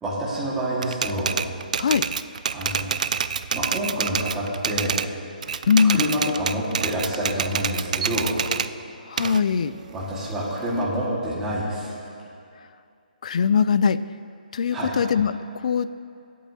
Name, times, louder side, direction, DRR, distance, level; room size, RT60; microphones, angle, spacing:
voice 1, 0.0-1.3 2.5-2.9 3.5-5.0 5.8-8.3 9.9-11.9 14.7-14.9, equal, 5° right, -8 dB, 1.8 m, -27 dB
Typewriter, 0.8-5.1 5.4-8.7 9.2-10.8, right 6 dB, 55° right, 0.3 m, -27 dB
voice 2, 5.7-6.0 9.1-9.7 13.2-14.0 14.5-15.9, left 6 dB, 50° left, 15 dB, 0.3 m, -21 dB
23.0 x 8.3 x 2.8 m, 2.5 s
hypercardioid pair, 170°, 5 cm